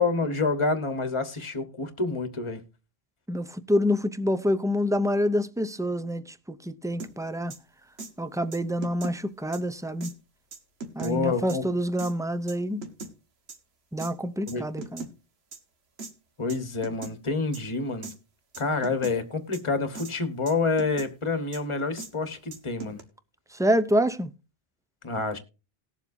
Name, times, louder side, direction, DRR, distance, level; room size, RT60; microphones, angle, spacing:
voice 1, 0.0-2.6 11.0-11.6 14.5-14.6 16.4-18.1 18.6-23.0 25.0-25.4, left 3 dB, 30° left, 1.3 m, -28 dB
voice 2, 3.3-7.5 8.2-10.1 10.9-12.8 13.9-15.1 23.5-24.3, equal, 5° right, 0.4 m, -27 dB
sound 1, 7.0-7.1 7.5-7.6 8.0-8.1 8.5-9.2 9.5-9.6 10.0-10.1 10.5-11.1 11.5-11.6 12.0-12.1 12.5-13.1 13.5-13.6 14.0-14.1 14.5-15.1 15.5-15.6 16.0-16.1 16.5-16.6 16.8-17.1 17.5-17.6 18.0-18.1 18.5-19.1 19.5-19.6 19.9-20.1 20.5-21.1 21.5-21.6 22.0-22.1 22.5-23.0, right 3 dB, 80° right, 1.6 m, -39 dB
19.0 x 7.3 x 2.6 m
omnidirectional pair, 1.1 m